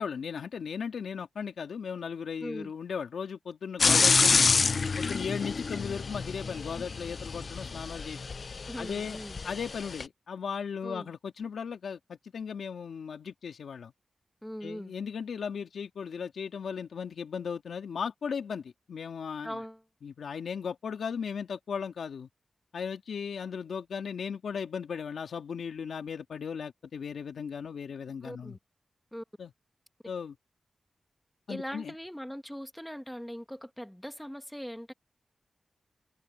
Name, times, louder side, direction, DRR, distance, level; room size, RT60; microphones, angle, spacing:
voice 1, 0.0-4.5 5.0-8.2 8.8-9.2 9.4-13.9 14.6-19.6 20.0-22.3 22.7-28.6 29.4-29.5 30.1-30.4 31.5-31.9, left 6 dB, 85° left, 2.2 m, -36 dB
voice 2, 2.4-2.7 3.9-4.1 8.7-9.4 10.8-11.1 14.4-14.9 19.4-19.8 28.2-28.6 29.1-29.2 31.5-34.9, equal, 5° left, 2.1 m, -40 dB
sound 1, 3.8-10.0, left 4 dB, 65° left, 0.6 m, -28 dB
cardioid pair, 40°, 0 cm